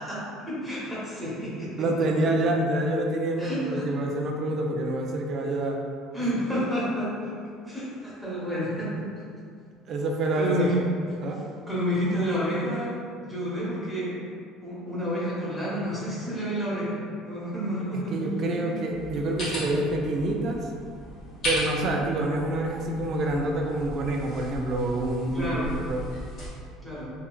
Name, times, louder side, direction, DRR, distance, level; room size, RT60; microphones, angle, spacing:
voice 1, 0.0-1.9 3.4-3.9 6.1-7.3 7.7-9.0 10.4-10.8 11.7-12.9 13.2-14.2 14.6-18.8 25.3-25.7 26.8-27.1, equal, ahead, -9 dB, 1.0 m, -30 dB
voice 2, 1.8-5.8 9.9-10.8 11.2-11.4 17.9-20.7 21.4-26.0, right 1 dB, 45° right, 1 dB, 0.3 m, -27 dB
sound 1, 18.9-26.5, equal, 45° left, 1.3 m, -36 dB
2.8 x 2.6 x 2.3 m, 2.2 s
cardioid pair, 120°, 0 cm